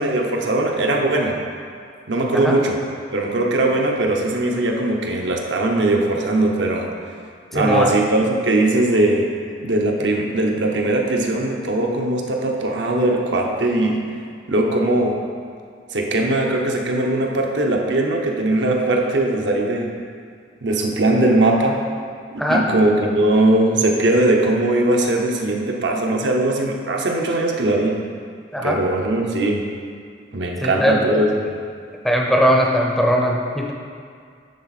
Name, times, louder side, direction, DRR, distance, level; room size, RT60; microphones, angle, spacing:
voice 1, 0.0-1.4 2.1-2.8 3.1-6.9 7.5-9.3 9.6-14.0 14.5-15.2 15.9-19.9 20.6-21.8 22.3-28.0 28.6-29.7 30.3-31.6, right 2 dB, 80° right, 1 dB, 0.8 m, -20 dB
voice 2, 7.5-7.9 22.4-22.6 28.5-28.8 30.6-31.2 32.0-33.7, equal, ahead, 0 dB, 0.5 m, -19 dB
10.5 x 3.5 x 4.1 m, 2.2 s
head